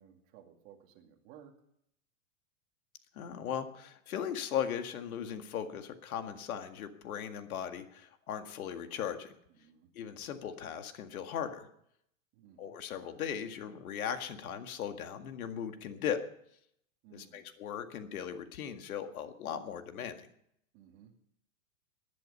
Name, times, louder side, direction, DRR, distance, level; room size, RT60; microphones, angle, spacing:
voice 1, 0.0-1.5 9.5-9.9 12.3-12.8 17.0-17.5 20.7-21.1, right 9 dB, 40° right, 3 dB, 2.4 m, -57 dB
voice 2, 3.1-9.3 9.9-11.7 12.6-16.2 17.1-20.3, left 8 dB, 80° left, 7 dB, 2.0 m, -38 dB
18.5 x 11.0 x 5.6 m, 0.73 s
supercardioid pair, 165°, 42 cm